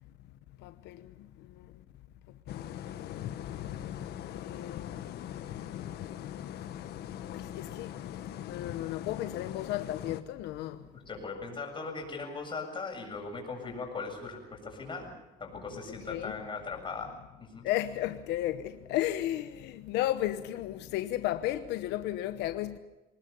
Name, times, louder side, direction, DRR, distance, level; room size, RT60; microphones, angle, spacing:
voice 1, 0.6-1.7 2.5-3.3 4.3-5.0 7.3-10.8 15.9-16.4 17.6-22.8, left 13 dB, 90° left, 1.0 m, -34 dB
sound 1, 2.5-10.2, left 11 dB, 75° left, 1.5 m, -40 dB
voice 2, 10.9-15.1 15.4-17.1 17.4-17.6, left 4 dB, 30° left, 7.4 m, -39 dB
25.0 x 19.0 x 7.0 m
cardioid pair, 110°, 17 cm